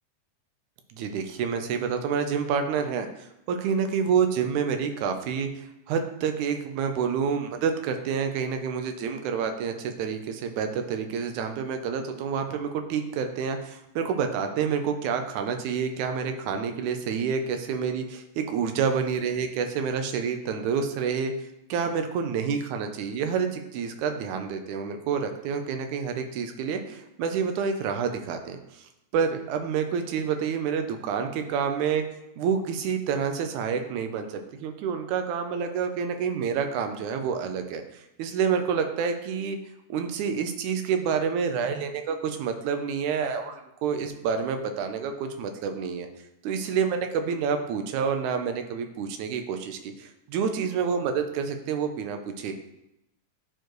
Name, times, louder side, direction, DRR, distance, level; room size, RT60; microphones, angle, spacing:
voice 1, 0.9-21.3 21.7-32.0 32.4-39.6 39.9-46.1 46.4-52.5, right 6 dB, 85° right, 6 dB, 2.2 m, -28 dB
12.5 x 4.6 x 3.1 m, 0.88 s
omnidirectional pair, 3.4 m